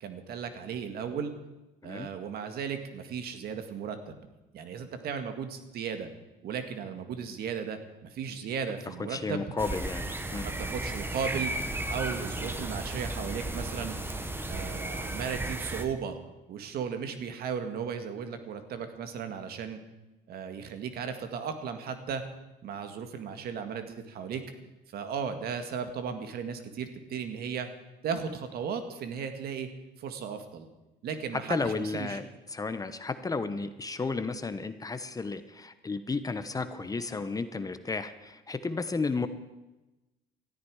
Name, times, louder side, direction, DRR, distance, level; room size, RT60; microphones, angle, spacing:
voice 1, 0.0-1.3 1.8-4.2 4.5-6.1 6.4-9.5 10.4-11.5 11.9-14.0 14.5-16.2 16.5-19.8 20.3-22.2 22.6-24.4 24.9-27.7 28.0-29.7 30.0-30.7 31.0-32.2, right 6 dB, 65° right, 7 dB, 1.9 m, -35 dB
voice 2, 9.1-10.5 31.5-32.2 32.5-39.3, left 4 dB, 20° left, 11 dB, 1.0 m, -33 dB
sound 1, 9.6-15.8, right 2 dB, 15° right, 1.4 m, -34 dB
19.0 x 13.5 x 4.9 m, 1.0 s
cardioid pair, 110°, 17 cm